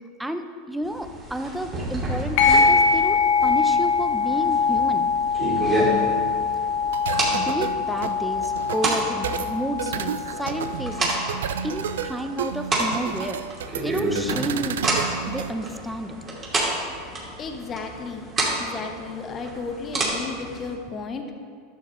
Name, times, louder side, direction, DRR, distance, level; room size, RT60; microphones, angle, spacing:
voice 1, 0.2-5.1 7.3-11.2 11.6-13.4 13.8-16.2, right 1 dB, 5° right, 7 dB, 0.6 m, -31 dB
sound 1, 0.8-20.7, right 1 dB, 30° right, 2.7 m, -30 dB
sound 2, 2.4-11.4, left 5 dB, 60° left, 1.2 m, -23 dB
sound 3, 6.9-15.5, right 8 dB, 85° right, 0.4 m, -31 dB
voice 2, 17.4-18.3 18.6-21.3, left 4 dB, 30° left, 4 dB, 0.9 m, -33 dB
11.5 x 7.1 x 3.8 m, 2.1 s
hypercardioid pair, 110°, 0 cm